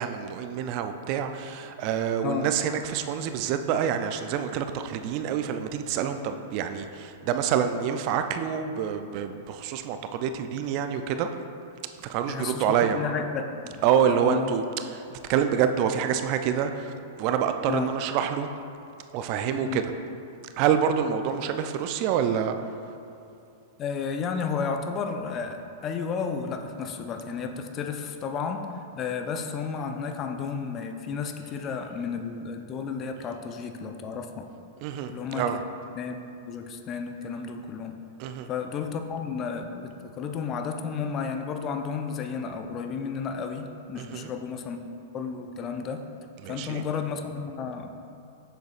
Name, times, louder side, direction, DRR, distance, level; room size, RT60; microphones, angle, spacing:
voice 1, 0.0-11.3 12.0-13.0 13.8-18.5 19.1-19.9 20.6-22.6 34.8-35.6 38.2-38.5 44.0-44.3 46.4-46.8, right 8 dB, 45° right, 8 dB, 0.4 m, -27 dB
voice 2, 12.3-13.8 14.1-14.5 17.7-17.9 19.6-19.8 23.8-34.5 35.1-35.6 36.0-36.2 36.5-38.0 38.5-44.8 45.1-46.1 46.5-47.9, left 6 dB, 35° left, 6 dB, 0.5 m, -32 dB
7.8 x 6.4 x 2.4 m, 2.6 s
hypercardioid pair, 105°, 0 cm